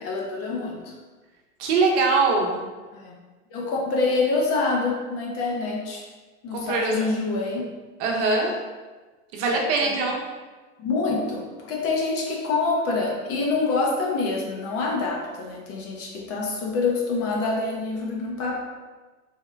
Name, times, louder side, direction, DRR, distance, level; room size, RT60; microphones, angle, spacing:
voice 1, 0.0-0.9 2.9-3.2 3.5-6.0 6.4-7.7 9.8-10.0 10.8-18.6, left 3 dB, 35° left, -1 dB, 0.6 m, -26 dB
voice 2, 1.6-2.7 6.5-7.0 8.0-8.5 9.3-10.2, right 3 dB, 55° right, 0 dB, 0.8 m, -22 dB
3.6 x 2.0 x 3.3 m, 1.3 s
hypercardioid pair, 120°, 41 cm